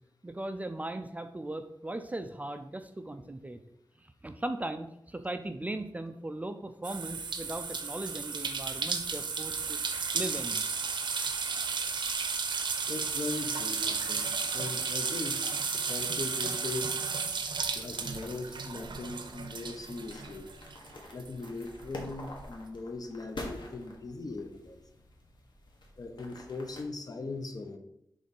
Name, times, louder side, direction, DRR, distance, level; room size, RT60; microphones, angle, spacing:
voice 1, 0.2-3.6 4.0-9.8 10.1-10.6, right 1 dB, 20° right, 8 dB, 0.4 m, -38 dB
sound 1, 6.8-20.9 21.2-22.4, right 5 dB, 80° right, 0.7 m, -33 dB
voice 2, 12.9-14.3 14.5-16.9 17.7-20.5 21.1-24.8 26.0-27.8, left 3 dB, 50° left, 6 dB, 0.8 m, -39 dB
sound 2, 17.5-26.8, left 2 dB, 75° left, 1.4 m, -48 dB
6.3 x 3.8 x 5.4 m, 0.78 s
wide cardioid pair, 115°, 8 cm